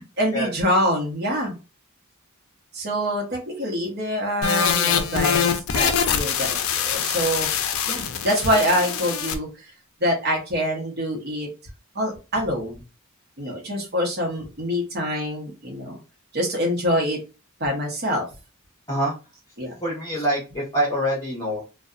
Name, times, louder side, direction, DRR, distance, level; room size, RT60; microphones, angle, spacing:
voice 1, 0.0-1.5 2.7-7.5 7.9-9.7 10.0-11.5 11.9-12.8 13.4-16.0 16.3-17.2 17.6-18.3 19.6-19.7, equal, 50° right, 0 dB, 0.8 m, -25 dB
sound 1, 4.4-9.4, left 7 dB, 70° left, 0.4 m, -24 dB
voice 2, 19.8-21.6, right 1 dB, 20° left, -6 dB, 0.9 m, -25 dB
2.7 x 2.2 x 2.4 m, 0.30 s
head